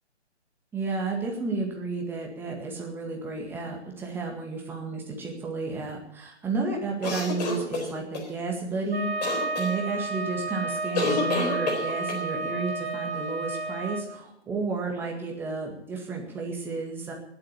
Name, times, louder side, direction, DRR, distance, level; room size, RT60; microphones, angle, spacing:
voice 1, 0.7-17.1, right 3 dB, 5° right, 0 dB, 1.9 m, -32 dB
sound 1, 7.0-8.3 9.2-9.7 10.9-12.2, left 3 dB, 35° left, 4.0 m, -29 dB
Wind instrument woodwind instrument, 8.9-14.0, right 3 dB, 60° right, 2.1 m, -31 dB
19.0 x 8.0 x 8.4 m, 0.78 s
figure-of-eight pair, 145°, 35 cm